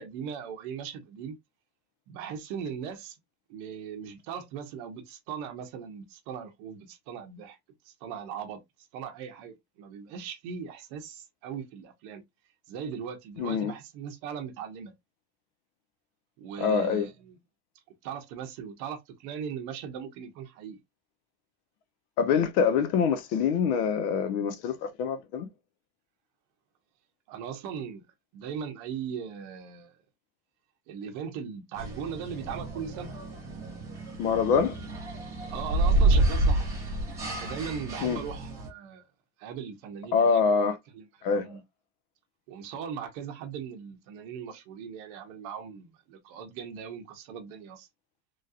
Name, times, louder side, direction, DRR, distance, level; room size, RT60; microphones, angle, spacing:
voice 1, 0.0-1.4 2.1-3.2 3.5-7.6 7.8-8.6 8.9-12.2 12.7-14.9 16.4-17.4 18.0-20.8 27.3-28.0 28.3-30.0 30.9-33.1 35.5-36.8 37.4-39.1 39.4-40.7 40.9-41.6 42.5-47.9, right 7 dB, 45° right, 0.7 m, -39 dB
voice 2, 13.4-13.7 16.6-17.1 22.2-25.5 34.2-34.8 38.0-38.2 40.1-40.8 41.2-41.5, left 6 dB, 65° left, 0.8 m, -25 dB
sound 1, 31.7-38.7, right 2 dB, 5° right, 0.4 m, -28 dB
3.1 x 2.7 x 2.4 m
supercardioid pair, 170°, 49 cm